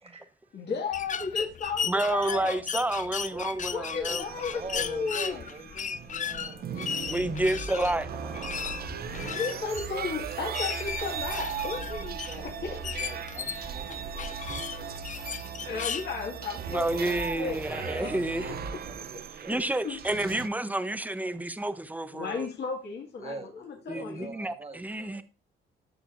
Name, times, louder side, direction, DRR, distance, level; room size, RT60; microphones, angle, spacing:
voice 1, 0.0-0.6 3.3-3.5 4.1-4.2 4.5-7.2 12.3-14.9 17.8-19.7 23.2-25.2, right 3 dB, 30° right, 1.8 m, -44 dB
voice 2, 0.5-2.6 3.2-5.4 9.2-13.2 15.6-18.1 19.2-19.6 19.8-20.0 22.1-24.3, left 5 dB, 60° left, 1.9 m, -35 dB
sound 1, 0.9-16.1, left 7 dB, 40° left, 0.5 m, -36 dB
voice 3, 1.9-4.2 7.1-8.9 16.7-18.5 19.5-22.5 23.9-25.2, right 1 dB, 10° right, 0.8 m, -30 dB
sound 2, 4.2-20.5, right 9 dB, 50° right, 0.6 m, -39 dB
sound 3, 7.0-18.9, right 2 dB, 85° right, 3.1 m, -43 dB
11.5 x 6.5 x 2.5 m
cardioid pair, 90°, 20 cm